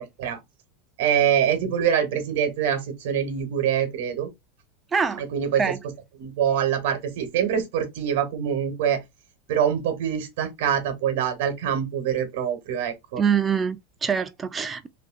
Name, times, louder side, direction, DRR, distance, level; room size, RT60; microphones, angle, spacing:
voice 1, 1.0-4.3 5.2-5.8 6.2-9.0 9.5-13.2, right 9 dB, 75° right, 0.9 m, -24 dB
voice 2, 4.9-5.2 5.6-5.8 13.2-14.9, right 6 dB, 20° right, 0.3 m, -24 dB
2.7 x 2.6 x 2.4 m
supercardioid pair, 130°, 0 cm